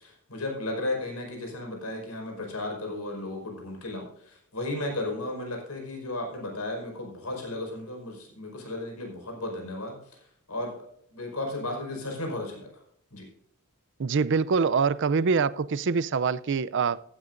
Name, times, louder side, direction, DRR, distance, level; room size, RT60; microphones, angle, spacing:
voice 1, 0.0-10.0 10.5-10.7 11.1-12.7 13.1-13.2, left 2 dB, 80° left, 2 dB, 5.1 m, -34 dB
voice 2, 14.0-17.0, right 5 dB, 55° right, 18 dB, 0.5 m, -24 dB
15.5 x 12.5 x 2.6 m, 0.70 s
head